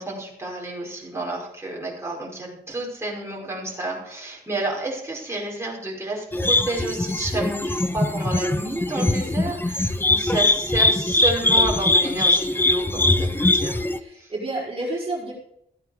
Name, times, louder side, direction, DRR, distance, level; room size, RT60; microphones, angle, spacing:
voice 1, 0.0-13.9 14.1-14.3, right 2 dB, 15° right, -3 dB, 5.4 m, -30 dB
sound 1, 6.3-14.0, left 2 dB, 10° left, 0.8 m, -21 dB
voice 2, 14.0-15.3, right 2 dB, 35° right, -6 dB, 4.8 m, -30 dB
15.5 x 8.9 x 5.0 m, 0.74 s
cardioid pair, 90°, 17 cm